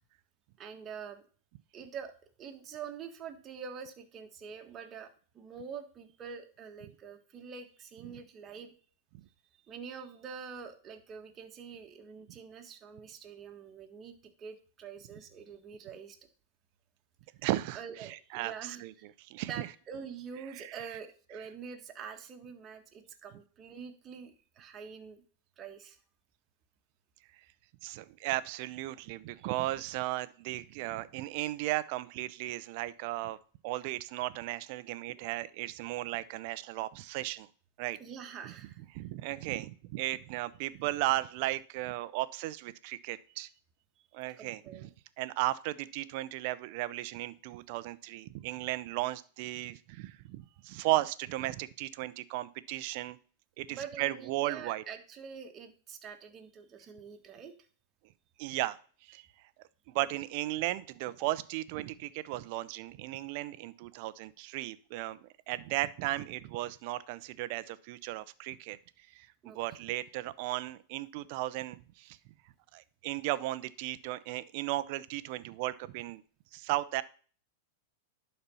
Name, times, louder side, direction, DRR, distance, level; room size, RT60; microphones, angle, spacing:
voice 1, 0.6-1.2 1.7-2.1 2.4-8.7 9.7-16.2 17.7-19.1 19.5-25.2 25.6-26.0 38.0-38.8 44.4-44.9 53.7-57.5 69.4-69.6, right 6 dB, 30° right, 4 dB, 1.6 m, -45 dB
voice 2, 17.4-18.9 19.3-19.7 20.5-20.8 27.8-33.4 33.6-37.5 37.8-38.0 38.4-38.5 38.9-43.5 44.1-44.9 45.2-53.2 53.6-54.8 58.4-59.3 59.9-68.8 69.1-69.3 69.5-72.2 72.7-76.2 76.5-77.0, right 17 dB, 55° right, 16 dB, 0.6 m, -35 dB
11.0 x 4.4 x 5.5 m, 0.42 s
hypercardioid pair, 130°, 0 cm